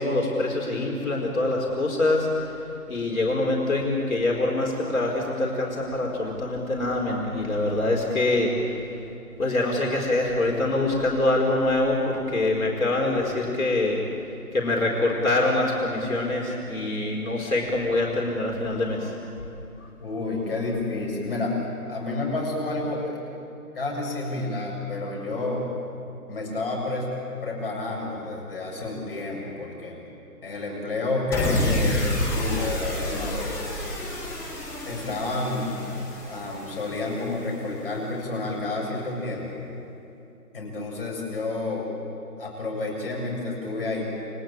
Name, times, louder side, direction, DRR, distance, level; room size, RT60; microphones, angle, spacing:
voice 1, 0.0-2.5 2.9-8.5 9.4-14.0 14.5-19.2, left 2 dB, 60° left, -1 dB, 4.5 m, -24 dB
voice 2, 20.0-21.6 21.9-23.2 23.7-25.7 26.3-27.1 27.4-30.0 30.4-33.6 34.9-35.7 36.3-39.6 40.5-41.9 42.4-44.0, left 2 dB, 35° left, -2 dB, 7.6 m, -30 dB
sound 1, 31.3-37.7, left 1 dB, 5° left, 3.1 m, -29 dB
29.5 x 19.5 x 9.0 m, 2.7 s
figure-of-eight pair, 160°, 46 cm